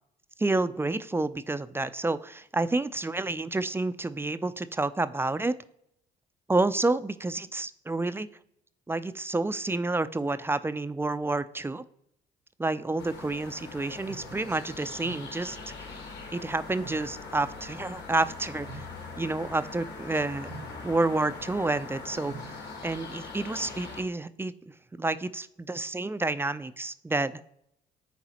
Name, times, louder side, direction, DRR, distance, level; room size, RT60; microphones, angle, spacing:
voice 1, 0.4-5.5 6.5-8.3 8.9-11.8 12.6-15.6 16.3-18.8 19.2-20.5 20.8-22.6 22.8-24.5 25.0-27.4, right 2 dB, 10° right, 13 dB, 0.3 m, -29 dB
sound 1, 13.0-24.0, left 4 dB, 55° left, 1.7 m, -42 dB
sound 2, 13.6-22.7, right 4 dB, 80° right, 1.0 m, -50 dB
9.9 x 4.0 x 2.8 m, 0.76 s
hypercardioid pair, 60°, 20 cm